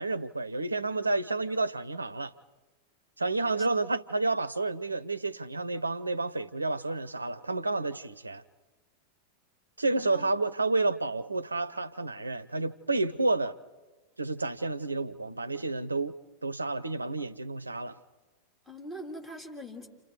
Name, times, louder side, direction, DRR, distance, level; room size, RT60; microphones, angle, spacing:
voice 1, 0.0-2.3 3.2-8.4 9.8-13.6 14.2-16.1 16.4-18.0, right 3 dB, 80° right, 0.7 m, -30 dB
voice 2, 10.0-10.3 18.6-19.9, equal, 10° left, 3.1 m, -42 dB
29.5 x 28.0 x 4.8 m
figure-of-eight pair, 90°, 0 cm